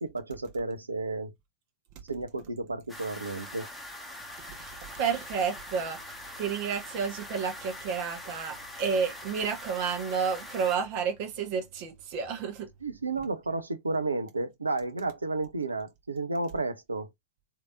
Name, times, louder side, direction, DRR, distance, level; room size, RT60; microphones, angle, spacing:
voice 1, 0.0-1.3 2.1-3.7 12.8-17.1, right 3 dB, 80° right, 0.5 m, -32 dB
sound 1, 2.9-10.8, left 1 dB, ahead, 1.1 m, -43 dB
voice 2, 4.6-6.0 6.4-12.7, right 6 dB, 45° right, 1.2 m, -31 dB
3.2 x 2.8 x 2.5 m
figure-of-eight pair, 90°, 0 cm